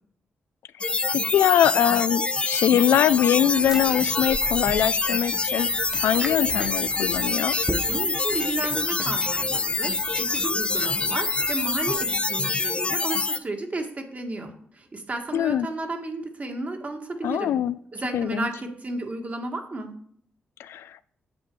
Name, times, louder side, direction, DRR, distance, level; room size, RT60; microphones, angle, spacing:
sound 1, 0.8-13.4, left 3 dB, 25° left, 0.5 m, -26 dB
voice 1, 1.1-5.7 6.0-7.6 15.3-15.7 17.2-17.8 18.1-18.5 20.6-21.0, left 10 dB, 85° left, 16 dB, 0.4 m, -22 dB
sound 2, 3.5-12.2, right 1 dB, 15° right, 0.7 m, -39 dB
voice 2, 7.9-9.9 10.2-17.5 17.9-19.9, right 2 dB, 35° right, 4 dB, 1.8 m, -33 dB
8.2 x 6.5 x 4.7 m, 0.64 s
cardioid pair, 70°, 4 cm